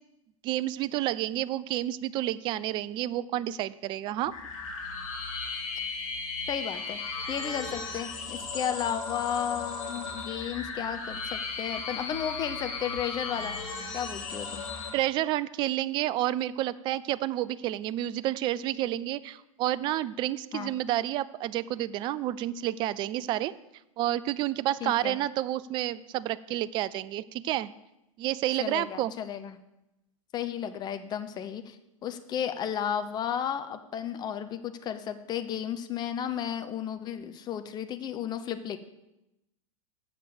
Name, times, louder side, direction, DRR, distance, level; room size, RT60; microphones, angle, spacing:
voice 1, 0.4-4.4 14.9-23.5 24.0-27.7 28.2-29.1, right 14 dB, 25° right, 17 dB, 0.3 m, -30 dB
sound 1, 4.2-14.9, left 4 dB, 60° left, 2.4 m, -36 dB
voice 2, 6.5-7.0 7.3-13.6 13.9-14.6 20.5-20.7 24.8-25.2 28.6-29.6 30.3-31.8 32.0-38.8, left 9 dB, 25° left, 9 dB, 0.7 m, -33 dB
7.5 x 6.6 x 7.0 m, 0.90 s
figure-of-eight pair, 105°, 18 cm